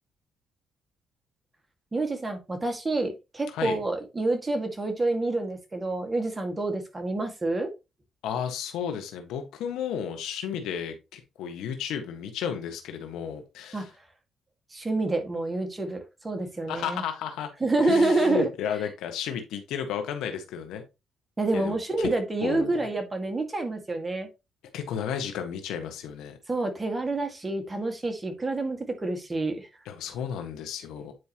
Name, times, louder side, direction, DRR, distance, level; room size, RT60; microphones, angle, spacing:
voice 1, 1.9-7.7 13.7-13.8 14.7-17.0 17.6-18.5 21.4-24.3 26.5-29.7, right 2 dB, 20° right, 5 dB, 1.9 m, -28 dB
voice 2, 3.5-3.8 8.2-13.9 16.7-17.5 17.8-20.8 21.5-22.1 22.4-22.7 24.7-26.4 29.8-31.1, left 8 dB, 90° left, 6 dB, 1.5 m, -33 dB
9.3 x 4.7 x 3.0 m, 0.26 s
cardioid pair, 90°, 0 cm